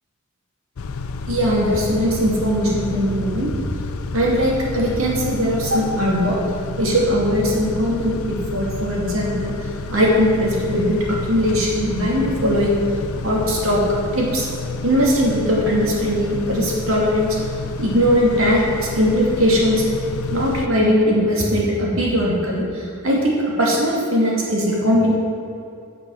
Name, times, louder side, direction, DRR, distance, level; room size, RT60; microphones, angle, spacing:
Car / Idling / Accelerating revving vroom, 0.8-20.7, left 3 dB, 90° left, 0.5 m, -30 dB
voice 1, 1.3-3.5 4.1-6.4 6.8-9.5 9.9-11.0 11.3-12.7 13.2-13.8 14.1-14.5 14.8-17.4 17.8-19.8 20.3-25.2, equal, 75° right, -3 dB, 2.4 m, -19 dB
9.5 x 6.9 x 6.3 m, 2.6 s
head